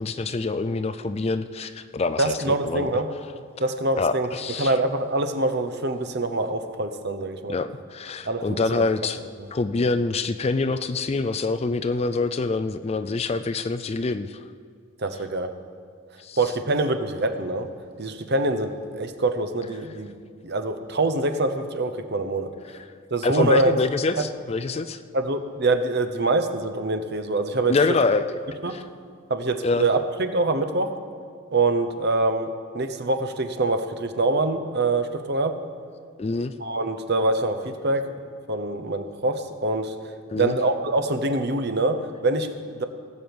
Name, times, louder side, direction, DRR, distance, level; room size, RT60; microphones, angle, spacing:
voice 1, 0.0-2.9 4.0-4.7 7.5-9.2 9.5-14.3 16.2-16.4 23.2-25.0 27.7-28.4 28.7-28.8 29.6-29.8 36.2-36.5 40.3-40.6, left 3 dB, 30° left, 11 dB, 0.4 m, -25 dB
voice 2, 2.2-3.1 3.6-4.3 4.6-7.6 8.2-8.8 9.4-9.5 15.0-15.5 16.4-17.7 18.0-20.1 20.4-22.5 23.1-23.8 24.2-24.3 25.1-27.7 28.6-28.8 29.3-30.9 31.5-32.5 32.7-35.6 36.6-38.1 38.5-39.9 40.3-42.8, right 2 dB, 50° right, 8 dB, 0.9 m, -24 dB
17.5 x 7.9 x 7.0 m, 2.2 s
head